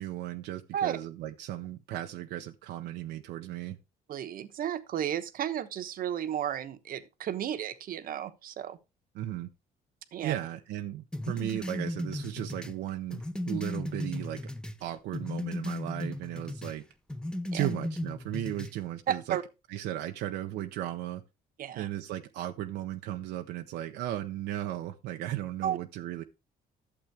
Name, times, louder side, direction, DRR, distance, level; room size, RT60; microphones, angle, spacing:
voice 1, 0.0-3.8 9.1-9.5 10.2-14.4 14.8-16.8 17.5-19.4 19.7-21.2 21.8-26.2, right 13 dB, 85° right, 0.7 m, -36 dB
voice 2, 4.1-8.8 10.1-10.3 17.5-17.7 19.1-19.4 21.6-21.9 25.6-25.8, right 10 dB, 55° right, 1.1 m, -33 dB
sound 1, 11.1-14.8 15.1-16.8 17.1-18.8, left 1 dB, 5° left, 0.7 m, -35 dB
12.0 x 7.2 x 3.4 m
cardioid pair, 110°, 17 cm